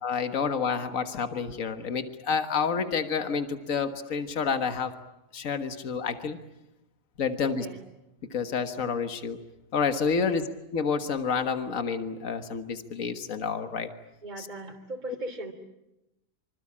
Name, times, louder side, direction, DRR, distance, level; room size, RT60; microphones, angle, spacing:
voice 1, 0.0-4.9 5.3-6.4 7.2-7.7 8.3-9.4 9.7-10.5 10.7-13.9 14.4-14.5, left 5 dB, 75° left, 8 dB, 1.9 m, -29 dB
voice 2, 7.4-7.8 10.2-10.4 14.2-15.5, right 2 dB, 35° right, 2 dB, 3.3 m, -38 dB
26.0 x 25.5 x 8.6 m, 0.92 s
omnidirectional pair, 1.4 m